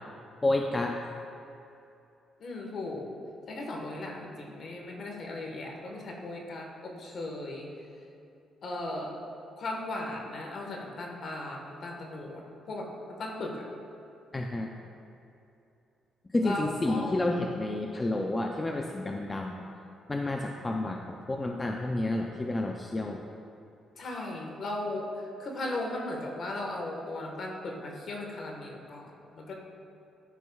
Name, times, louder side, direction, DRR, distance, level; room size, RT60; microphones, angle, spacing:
voice 1, 0.4-1.0 14.3-14.7 16.3-19.7 20.1-23.2, left 2 dB, 20° left, 2 dB, 0.5 m, -30 dB
voice 2, 2.4-3.1 3.5-7.7 8.6-9.2 9.6-13.6 16.4-17.2 23.9-29.5, left 2 dB, 55° left, 0 dB, 1.4 m, -37 dB
12.5 x 6.0 x 2.3 m, 2.8 s
cardioid pair, 90°, 0 cm